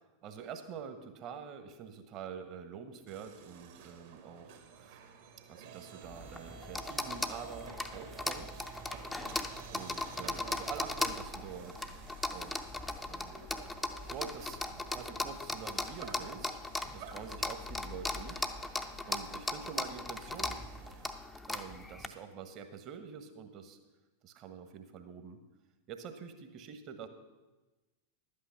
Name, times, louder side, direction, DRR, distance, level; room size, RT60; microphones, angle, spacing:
voice 1, 0.2-5.0 5.5-8.7 9.7-11.9 12.3-12.6 13.1-13.5 14.1-14.6 14.9-16.6 16.9-18.4 19.1-20.6 21.5-23.8 24.2-25.4 25.9-27.1, right 7 dB, 35° right, 8 dB, 1.2 m, -46 dB
sound 1, 3.1-21.1, right 7 dB, 55° right, 1.6 m, -52 dB
sound 2, 6.0-22.1, left 2 dB, 10° left, 0.7 m, -38 dB
11.5 x 8.7 x 5.8 m, 1.1 s
figure-of-eight pair, 90°, 0 cm